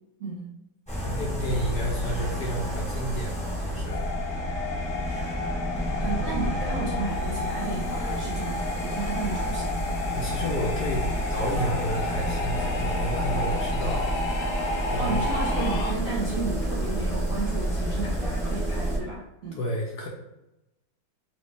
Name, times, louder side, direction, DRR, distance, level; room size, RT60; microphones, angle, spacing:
voice 1, 0.2-0.5 6.0-9.7 15.0-19.6, right 3 dB, 40° right, -8 dB, 1.2 m, -33 dB
sound 1, 0.9-19.0, equal, 5° left, 0.6 m, -30 dB
voice 2, 1.0-4.0 10.1-14.1 14.9-15.6 19.5-20.1, equal, 70° left, -1 dB, 1.0 m, -31 dB
sound 2, 3.9-15.9, left 3 dB, 85° left, 1.5 m, -32 dB
3.1 x 3.1 x 3.3 m, 0.94 s
omnidirectional pair, 2.1 m